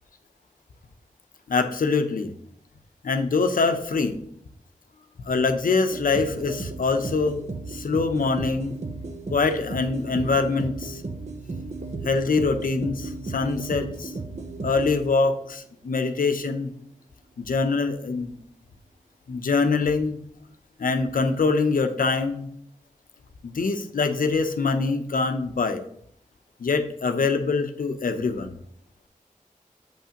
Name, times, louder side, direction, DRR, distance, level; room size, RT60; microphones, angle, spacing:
voice 1, 1.5-2.3 3.0-4.2 5.3-7.4 7.7-8.8 9.3-11.0 12.0-14.1 14.6-16.7 17.4-18.4 19.3-20.2 20.8-22.5 23.4-25.8 26.6-28.5, left 4 dB, 85° left, 7 dB, 0.7 m, -24 dB
sound 1, 5.9-15.4, right 3 dB, 55° right, 0.8 m, -35 dB
7.1 x 5.7 x 2.9 m, 0.67 s
wide cardioid pair, 70°, 14 cm